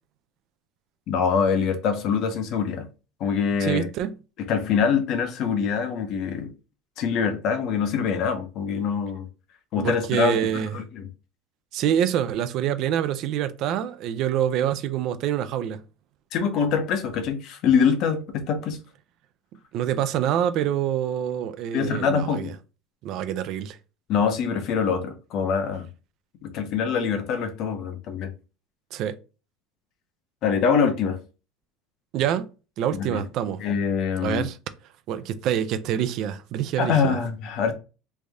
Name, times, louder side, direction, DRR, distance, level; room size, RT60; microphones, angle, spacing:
voice 1, 1.1-2.9 3.2-3.9 4.4-6.5 7.0-9.3 9.7-11.1 16.3-18.8 21.7-22.5 24.1-25.9 26.4-28.3 30.4-31.2 32.9-33.2 33.6-34.4 36.8-37.7, left 6 dB, 45° left, 0.7 m, -24 dB
voice 2, 3.6-4.2 9.7-10.7 11.7-15.8 19.7-22.5 23.0-23.8 28.9-29.1 32.1-33.6 34.2-34.6 35.1-37.2, right 10 dB, 45° right, 0.4 m, -26 dB
3.2 x 2.6 x 3.5 m
cardioid pair, 165°, 0 cm